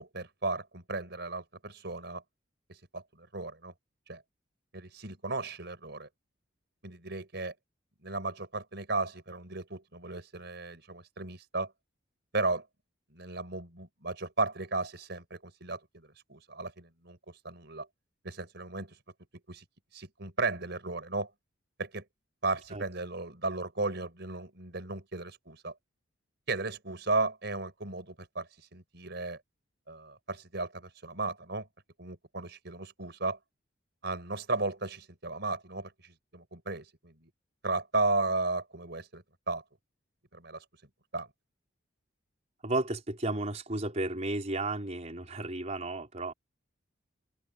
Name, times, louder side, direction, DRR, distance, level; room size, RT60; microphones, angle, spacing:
voice 1, 0.0-2.2 2.9-3.7 4.1-4.2 4.7-6.1 6.8-7.5 8.0-11.7 12.3-12.7 13.1-17.9 18.2-19.0 19.5-19.6 19.9-21.3 21.8-22.0 22.4-25.7 26.5-29.4 29.9-31.7 32.0-33.4 34.0-37.3 37.6-39.6 40.3-40.6 41.1-41.3, right 3 dB, 60° right, 5.3 m, -35 dB
voice 2, 42.6-46.3, right 2 dB, 35° right, 4.2 m, -33 dB
open air
head